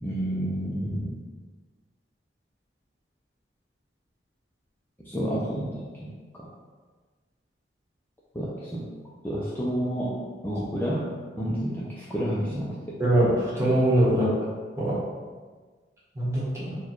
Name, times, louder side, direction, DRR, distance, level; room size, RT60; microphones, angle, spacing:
voice 1, 0.0-1.1 5.0-6.5 8.3-8.9 9.2-11.1 11.4-13.0, equal, 10° left, -7 dB, 0.5 m, -30 dB
voice 2, 13.0-14.3 14.8-14.9 16.1-16.8, right 1 dB, 15° right, -8 dB, 1.3 m, -22 dB
4.5 x 2.3 x 4.4 m, 1.4 s
head